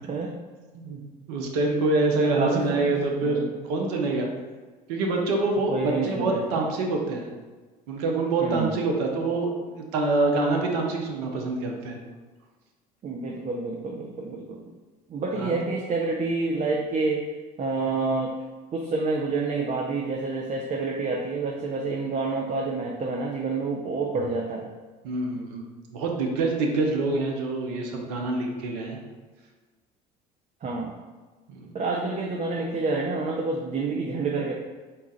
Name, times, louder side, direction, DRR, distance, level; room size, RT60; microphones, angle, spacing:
voice 1, 0.1-0.4 2.3-3.5 5.7-6.6 8.4-8.8 13.0-14.7 15.1-17.3 17.6-18.3 18.7-24.7 30.6-30.9 31.7-34.5, right 3 dB, 35° right, 0 dB, 0.6 m, -28 dB
voice 2, 1.3-4.3 4.9-7.3 7.9-12.0 15.3-15.6 25.0-29.0 31.5-31.7, right 3 dB, 80° right, 1 dB, 0.7 m, -26 dB
3.9 x 2.4 x 4.0 m, 1.3 s
hypercardioid pair, 70°, 20 cm